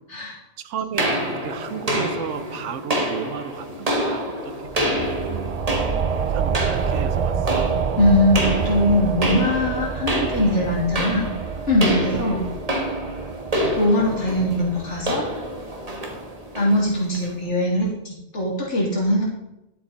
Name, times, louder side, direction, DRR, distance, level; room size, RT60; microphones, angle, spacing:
voice 1, 0.6-5.6 6.3-7.7 12.1-12.5, right 8 dB, 90° right, 12 dB, 1.1 m, -34 dB
sound 1, 1.0-17.3, equal, 30° right, 1.7 m, -28 dB
sound 2, 4.6-15.9, right 6 dB, 60° right, 0.4 m, -28 dB
voice 2, 8.0-11.3 11.7-12.5 13.8-15.3 16.5-19.3, left 1 dB, 80° left, -4 dB, 2.9 m, -21 dB
12.0 x 6.9 x 4.1 m, 0.89 s
omnidirectional pair, 1.2 m